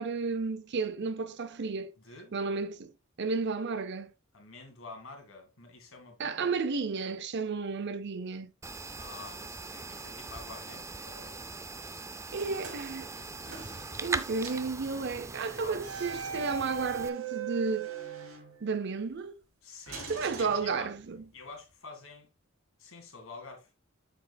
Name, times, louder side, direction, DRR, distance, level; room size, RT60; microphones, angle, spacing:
voice 1, 0.0-1.9 2.3-2.9 3.2-4.1 6.2-8.5 12.3-13.1 13.6-17.9 18.6-19.3 20.1-21.2, right 4 dB, 55° right, 0.6 m, -32 dB
voice 2, 2.0-2.4 4.3-6.5 9.0-11.5 14.9-15.8 19.6-20.9 21.3-22.3 22.8-23.7, left 3 dB, 75° left, 2.3 m, -48 dB
sound 1, 8.6-17.1, right 3 dB, 15° right, 0.5 m, -40 dB
sound 2, 12.3-14.1 14.4-14.7 15.8-19.0 19.9-21.3, right 7 dB, 90° right, 1.9 m, -40 dB
7.7 x 6.9 x 2.3 m
head